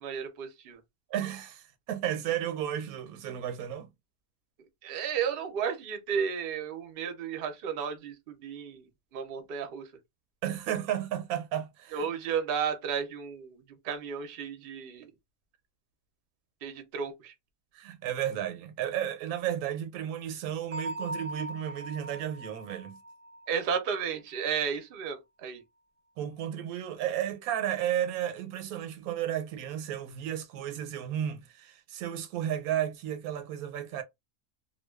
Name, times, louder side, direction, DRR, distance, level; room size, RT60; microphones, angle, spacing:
voice 1, 0.0-0.8 4.8-8.9 9.1-9.9 11.9-15.1 16.6-17.3 23.5-25.6, right 7 dB, 55° right, 0.6 m, -33 dB
voice 2, 1.1-3.9 10.4-12.0 17.7-23.0 26.2-34.0, right 10 dB, 90° right, 1.0 m, -33 dB
Bell, 20.7-24.4, right 1 dB, 15° right, 0.4 m, -41 dB
2.5 x 2.2 x 2.2 m
omnidirectional pair, 1.5 m